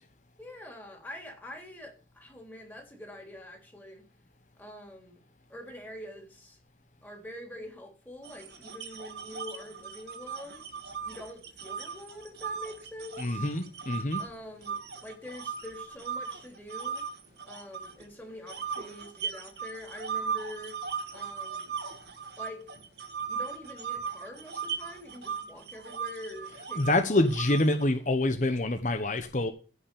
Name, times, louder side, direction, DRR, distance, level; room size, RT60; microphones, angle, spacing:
voice 1, 0.4-4.1 4.5-5.2 5.5-6.6 7.0-10.6 11.0-13.5 14.2-17.1 17.5-20.8 21.1-21.7 22.4-22.7 23.3-27.3, left 1 dB, 10° left, 3.3 m, -45 dB
sound 1, 8.2-14.2 14.6-18.0 18.5-27.8, right 6 dB, 70° right, 2.0 m, -38 dB
voice 2, 13.2-14.2 26.8-29.5, left 2 dB, 45° left, 1.0 m, -26 dB
15.5 x 5.8 x 6.9 m
head